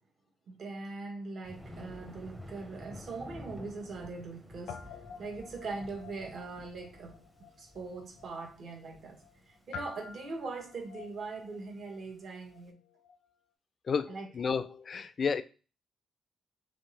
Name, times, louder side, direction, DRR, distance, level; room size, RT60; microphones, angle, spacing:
voice 1, 0.5-12.8 14.1-14.3, right 3 dB, 50° right, 1.2 m, -41 dB
Thunder, 1.4-12.5, left 1 dB, 5° right, 0.7 m, -51 dB
Guitar, 3.6-4.4 4.6-13.3, left 6 dB, 85° left, 0.5 m, -51 dB
voice 2, 13.9-15.4, left 5 dB, 35° left, 0.3 m, -31 dB
3.6 x 3.2 x 4.0 m
cardioid pair, 155°, 0 cm